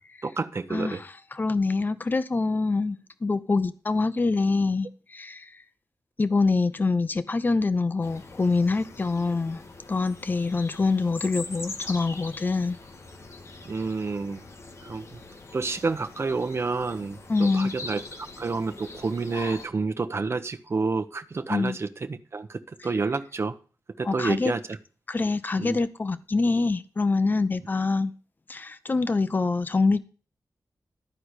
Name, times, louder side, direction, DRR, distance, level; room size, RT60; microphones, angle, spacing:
voice 1, 0.2-1.0 13.6-14.4 14.8-15.2 15.5-23.6 24.0-24.8 25.6-25.8, right 4 dB, 45° right, 0.9 m, -29 dB
voice 2, 1.4-5.5 6.2-9.6 9.9-12.8 17.3-17.7 21.5-21.8 24.1-24.5 25.1-28.1 28.5-30.0, left 3 dB, 30° left, 0.7 m, -25 dB
sound 1, 8.0-19.7, left 3 dB, 50° left, 1.5 m, -42 dB
13.0 x 4.7 x 8.1 m
wide cardioid pair, 120°, 6 cm